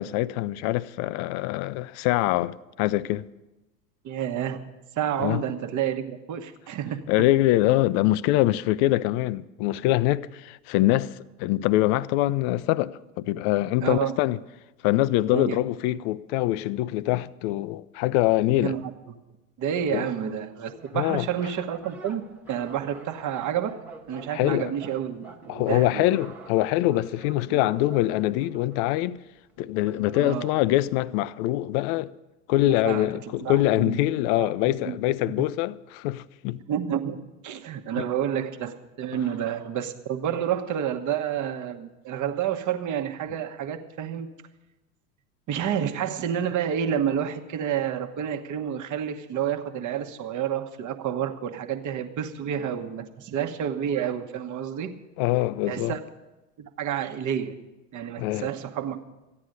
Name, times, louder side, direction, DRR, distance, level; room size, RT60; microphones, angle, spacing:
voice 1, 0.0-3.3 5.2-5.4 7.1-11.1 11.4-14.4 14.8-18.8 19.9-20.1 20.9-21.3 24.3-24.7 25.5-29.2 29.6-32.1 32.5-36.6 38.0-38.1 55.2-55.9 58.2-58.5, left 16 dB, 45° left, 0.5 m, -24 dB
voice 2, 4.0-4.6 4.9-7.0 13.8-14.1 15.3-15.6 18.5-18.9 19.6-22.2 22.5-23.7 24.1-26.1 27.5-27.6 30.1-30.5 32.7-34.0 34.4-35.0 35.4-35.5 36.7-37.2 37.4-44.3 45.5-54.9 55.7-56.0 56.6-57.6 57.9-59.0, right 9 dB, 35° right, 1.2 m, -29 dB
sound 1, 20.7-30.8, right 3 dB, 5° right, 1.3 m, -47 dB
13.5 x 9.7 x 6.6 m
hypercardioid pair, 85°, 50 cm